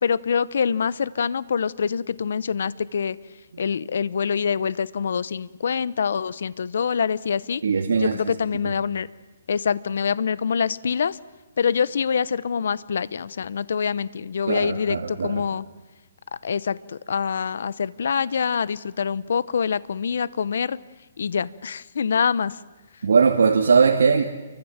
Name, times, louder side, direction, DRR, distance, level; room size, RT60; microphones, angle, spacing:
voice 1, 0.0-3.2 3.6-7.6 8.0-9.1 9.5-11.2 11.6-15.7 16.4-20.8 21.2-22.6, left 6 dB, 65° left, 19 dB, 0.9 m, -25 dB
voice 2, 7.6-8.3 14.5-15.4 23.0-24.3, right 5 dB, 80° right, 2 dB, 2.3 m, -20 dB
29.5 x 24.0 x 7.4 m, 1.2 s
hypercardioid pair, 160°, 0 cm